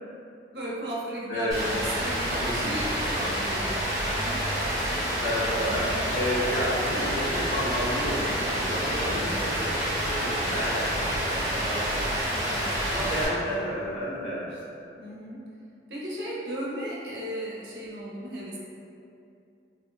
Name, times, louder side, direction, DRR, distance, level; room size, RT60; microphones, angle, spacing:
voice 1, 0.5-5.2 7.4-7.5 8.8-9.4 12.3-12.8 15.0-15.4 15.9-18.6, right 1 dB, 65° right, -6 dB, 0.6 m, -36 dB
voice 2, 1.3-1.6 2.4-2.7 5.2-12.2 12.9-14.6, equal, 75° left, -8 dB, 0.9 m, -31 dB
Rain, 1.5-13.3, equal, 20° right, 0.6 m, -28 dB
4.1 x 2.0 x 2.3 m, 2.6 s
head